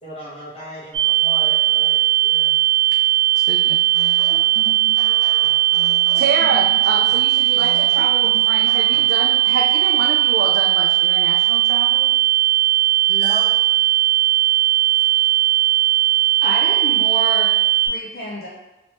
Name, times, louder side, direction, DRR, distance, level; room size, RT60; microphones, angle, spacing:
voice 1, 0.0-2.5 9.2-9.3 13.1-14.0, equal, 35° left, -6 dB, 0.9 m, -36 dB
sound 1, 0.9-17.9, right 14 dB, 85° right, 1.0 m, -17 dB
voice 2, 3.4-4.3 6.1-12.1, right 4 dB, 65° right, 0 dB, 0.3 m, -27 dB
sound 2, 3.9-9.3, right 1 dB, 15° right, 0.5 m, -38 dB
voice 3, 16.4-17.5 17.9-18.5, equal, 60° left, -5 dB, 0.5 m, -28 dB
3.0 x 2.8 x 3.1 m, 1.0 s
head